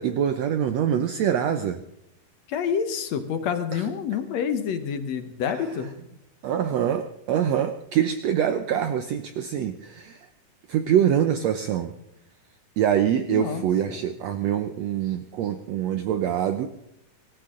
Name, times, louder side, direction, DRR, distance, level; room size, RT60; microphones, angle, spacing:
voice 1, 0.0-1.8 3.7-3.9 5.5-5.6 6.4-10.3 10.7-11.9 12.8-16.7, right 9 dB, 85° right, 9 dB, 1.5 m, -24 dB
voice 2, 2.5-5.9 13.3-14.0, left 7 dB, 65° left, 9 dB, 1.8 m, -28 dB
25.5 x 14.0 x 3.8 m, 0.82 s
omnidirectional pair, 4.0 m